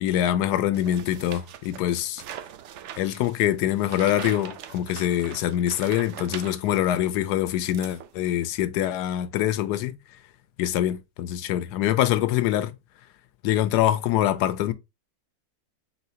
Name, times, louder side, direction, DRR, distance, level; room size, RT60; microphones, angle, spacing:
voice 1, 0.0-2.2 3.0-10.2 10.6-12.8 13.4-14.7, left 12 dB, 80° left, 1.1 m, -24 dB
sound 1, 0.7-7.1 7.5-8.4, right 10 dB, 75° right, 0.6 m, -42 dB
4.3 x 4.1 x 2.8 m
omnidirectional pair, 1.7 m